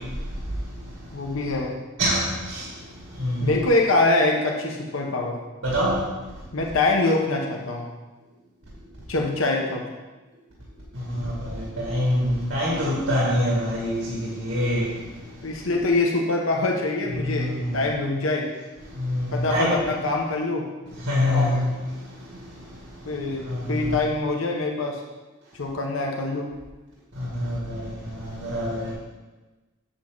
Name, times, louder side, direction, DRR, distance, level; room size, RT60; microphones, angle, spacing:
voice 1, 1.1-1.7 3.4-5.4 6.5-7.9 9.1-9.8 15.4-18.5 19.3-20.7 21.3-21.6 23.0-25.0 25.5-26.5, left 2 dB, 85° left, 0 dB, 1.1 m, -24 dB
voice 2, 5.6-6.0 11.9-12.2 12.5-13.9 14.2-14.8 17.2-17.4 19.0-19.2 19.5-19.8 21.1-21.5 23.5-23.6 28.4-28.8, left 1 dB, 90° right, -6 dB, 2.1 m, -23 dB
8.1 x 7.4 x 3.9 m, 1.2 s
head